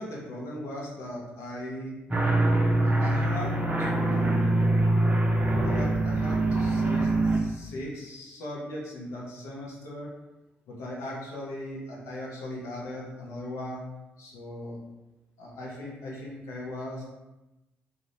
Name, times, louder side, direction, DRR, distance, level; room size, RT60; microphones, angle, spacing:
voice 1, 0.0-1.9 3.0-3.5 3.8-4.5 5.6-10.1 10.7-13.8 14.2-14.8 15.4-17.0, left 1 dB, 65° left, -4 dB, 0.7 m, -38 dB
sound 1, 2.1-7.4, right 2 dB, 25° right, 0.5 m, -24 dB
2.4 x 2.1 x 3.0 m, 1.0 s
hypercardioid pair, 40°, 5 cm